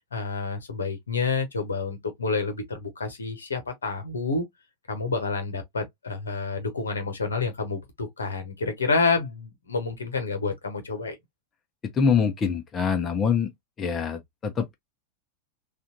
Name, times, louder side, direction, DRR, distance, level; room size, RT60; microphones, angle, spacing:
voice 1, 0.0-4.4 4.9-11.1, left 4 dB, 70° left, 1.1 m, -29 dB
voice 2, 11.9-13.5 13.8-14.8, left 6 dB, 25° left, 0.7 m, -24 dB
3.3 x 2.4 x 2.9 m
figure-of-eight pair, 90°, 0 cm